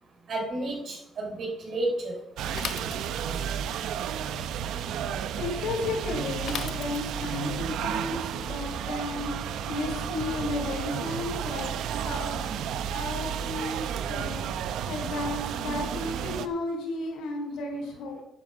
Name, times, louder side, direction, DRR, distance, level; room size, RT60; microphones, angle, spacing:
voice 1, 0.3-2.2 3.3-3.5, right 2 dB, 60° right, -2 dB, 5.2 m, -31 dB
sound 1, 2.4-16.5, right 8 dB, 85° right, 0.8 m, -32 dB
Bicycle / Mechanisms, 2.5-3.5 6.4-7.4, left 8 dB, 70° left, 1.0 m, -37 dB
voice 2, 5.4-9.3 9.7-12.5 12.9-14.4 14.9-18.2, left 2 dB, 90° left, 2 dB, 3.8 m, -33 dB
10.0 x 9.5 x 6.1 m, 0.84 s
cardioid pair, 90°, 0 cm